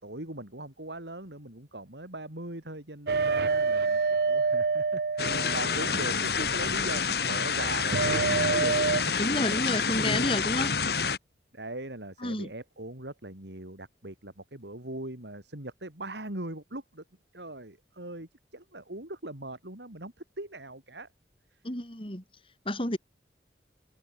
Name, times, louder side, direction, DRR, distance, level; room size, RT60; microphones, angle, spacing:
voice 1, 0.0-9.0 9.7-10.6 11.5-17.0 17.3-21.1 21.5-21.6 22.0-22.1, right 2 dB, 80° right, 4.4 m, -40 dB
sound 1, 3.1-6.1 7.9-9.0, right 4 dB, 65° right, 0.5 m, -26 dB
sound 2, 5.2-11.2, left 5 dB, 65° left, 2.9 m, -28 dB
voice 2, 9.2-10.7 12.2-12.5 21.6-22.2 22.6-23.0, left 1 dB, 30° left, 4.7 m, -30 dB
head